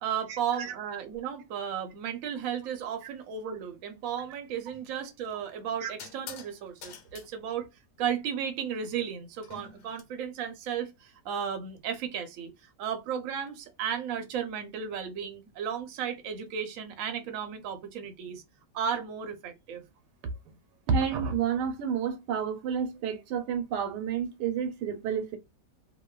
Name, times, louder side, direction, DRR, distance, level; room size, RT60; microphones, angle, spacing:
voice 1, 0.0-7.7 8.0-18.4 18.7-19.8, right 8 dB, 65° right, 0.8 m, -34 dB
sound 1, 4.7-4.9 6.0-6.5 6.8-7.3 9.4-10.0, left 6 dB, 80° left, 1.3 m, -45 dB
voice 2, 20.9-25.4, right 7 dB, 85° right, 1.3 m, -30 dB
2.9 x 2.2 x 2.2 m
omnidirectional pair, 1.9 m